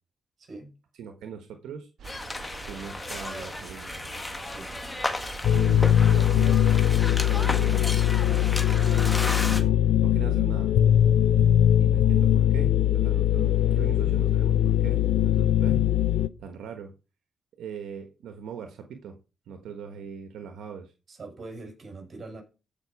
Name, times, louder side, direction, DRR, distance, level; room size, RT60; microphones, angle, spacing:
voice 1, 0.4-0.7 4.4-4.7 21.1-22.4, right 3 dB, 45° right, 5.6 m, -42 dB
voice 2, 1.0-1.9 2.6-3.9 5.5-10.7 11.8-15.8 16.4-16.9 17.6-19.2 19.5-20.9, right 6 dB, 85° right, 1.2 m, -40 dB
sound 1, 2.0-9.6, left 2 dB, 20° left, 1.6 m, -34 dB
sound 2, 2.0-7.0, right 7 dB, 65° right, 1.7 m, -44 dB
sound 3, 5.4-16.3, left 11 dB, 85° left, 0.5 m, -21 dB
14.0 x 5.4 x 4.7 m
cardioid pair, 95°, 0 cm